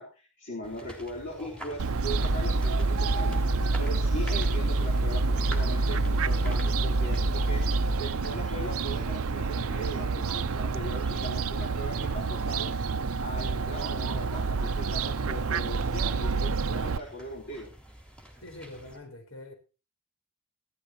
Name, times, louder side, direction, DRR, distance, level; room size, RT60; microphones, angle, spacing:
voice 1, 0.0-7.6 8.0-12.7 13.2-17.7, equal, 55° left, 4.4 m, -40 dB
Ambience of two people walking and chatting, 0.6-19.0, equal, 5° left, 3.6 m, -48 dB
Fowl, 1.8-17.0, right 5 dB, 80° right, 0.6 m, -30 dB
sound 1, 2.1-8.0, right 1 dB, 30° right, 0.8 m, -27 dB
voice 2, 18.4-19.5, left 1 dB, 70° left, 4.6 m, -44 dB
16.0 x 14.5 x 3.1 m
head